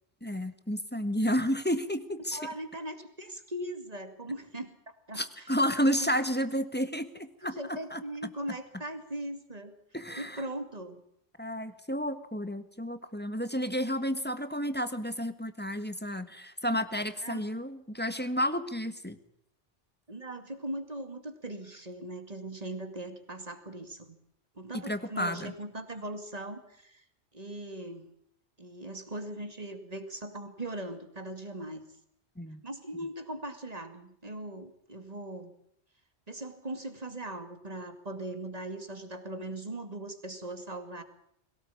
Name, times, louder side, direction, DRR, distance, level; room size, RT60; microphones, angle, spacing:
voice 1, 0.2-2.4 5.1-7.5 7.9-8.0 9.9-10.4 11.4-19.2 24.7-25.5 32.4-32.6, equal, 10° left, 11 dB, 1.5 m, -31 dB
voice 2, 2.3-5.5 5.9-6.1 7.4-9.8 10.2-11.0 17.2-17.5 20.1-24.1 24.5-27.0 27.3-28.1 28.6-31.9 32.6-35.5 36.3-41.0, right 1 dB, 35° right, 7 dB, 2.5 m, -40 dB
22.0 x 18.0 x 8.6 m, 0.73 s
omnidirectional pair, 1.1 m